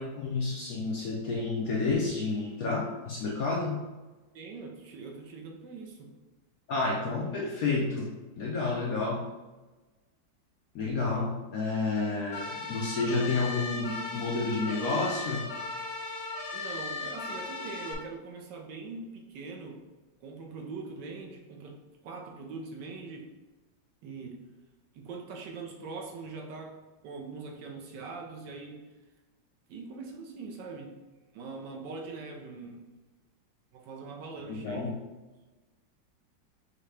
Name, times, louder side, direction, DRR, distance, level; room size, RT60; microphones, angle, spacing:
voice 1, 0.0-3.8 6.7-9.3 10.7-15.5 34.5-34.9, left 3 dB, 70° left, -2 dB, 0.9 m, -30 dB
voice 2, 4.3-6.2 13.1-13.7 16.5-19.8 20.2-23.3 24.0-24.4 24.9-26.8 27.0-28.8 29.7-31.0 31.3-32.9 33.7-34.9, right 4 dB, 75° right, 1 dB, 1.3 m, -42 dB
sound 1, 12.3-17.9, left 3 dB, 90° left, 1.4 m, -37 dB
6.4 x 2.3 x 3.3 m, 1.2 s
omnidirectional pair, 2.0 m